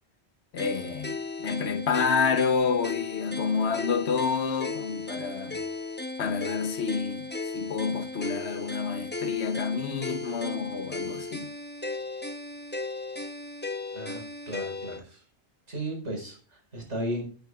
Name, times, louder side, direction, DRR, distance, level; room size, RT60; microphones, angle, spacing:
voice 1, 0.5-5.6 6.2-11.5, left 5 dB, 70° left, 1.2 m, -29 dB
sound 1, 0.6-15.0, left 3 dB, 10° left, 0.7 m, -36 dB
voice 2, 13.9-15.2 15.7-17.3, right 1 dB, 80° right, 5.2 m, -35 dB
17.5 x 9.0 x 2.4 m
omnidirectional pair, 1.2 m